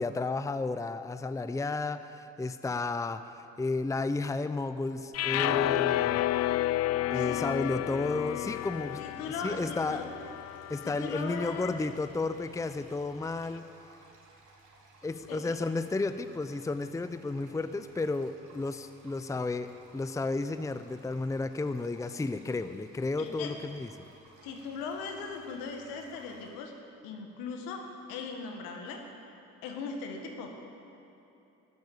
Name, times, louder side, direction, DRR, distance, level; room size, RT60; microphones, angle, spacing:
voice 1, 0.0-6.2 7.1-9.0 9.4-10.1 10.7-13.7 15.0-19.7 19.9-23.9, left 3 dB, 10° left, 11 dB, 0.6 m, -32 dB
sound 1, 5.1-11.4, left 14 dB, 45° left, 0.4 m, -31 dB
sound 2, 8.1-26.5, right 3 dB, 60° right, 3.2 m, -58 dB
voice 2, 9.0-10.1 10.8-11.8 15.3-15.4 23.2-23.5 24.4-26.7 27.0-29.0 29.6-30.6, left 5 dB, 80° left, 3 dB, 1.9 m, -39 dB
12.0 x 10.5 x 8.5 m, 3.0 s
hypercardioid pair, 55°, 35 cm